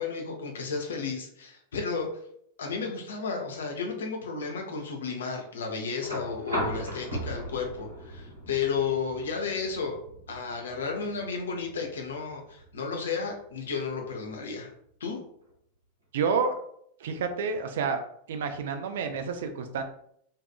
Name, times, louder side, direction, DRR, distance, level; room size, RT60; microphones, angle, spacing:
voice 1, 0.0-2.1 2.6-10.0 10.3-14.7 15.0-15.2, left 5 dB, 65° left, 2 dB, 0.6 m, -33 dB
sound 1, 6.0-14.1 15.5-15.6, equal, 80° right, 0.8 m, -38 dB
voice 2, 16.1-16.6 17.0-18.0 18.3-19.8, right 5 dB, 60° right, 7 dB, 0.3 m, -29 dB
2.6 x 2.3 x 2.2 m, 0.68 s
figure-of-eight pair, 90°, 0 cm